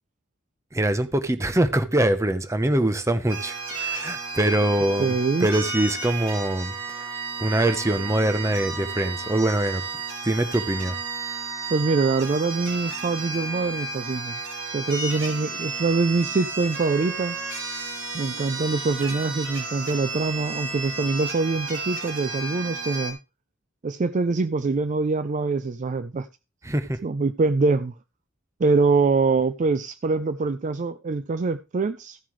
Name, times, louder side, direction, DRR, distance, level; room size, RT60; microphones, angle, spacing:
voice 1, 0.7-5.1 5.4-7.1 7.4-9.8 10.2-11.0 26.6-27.0, right 1 dB, 15° right, 0.8 m, -23 dB
sound 1, 3.3-23.1, right 3 dB, 75° right, 3.0 m, -33 dB
voice 2, 5.0-5.5 11.7-14.4 14.7-17.4 18.1-23.2 23.8-26.3 27.0-27.9 28.6-32.2, right 3 dB, 40° right, 0.4 m, -24 dB
14.5 x 7.5 x 3.2 m
head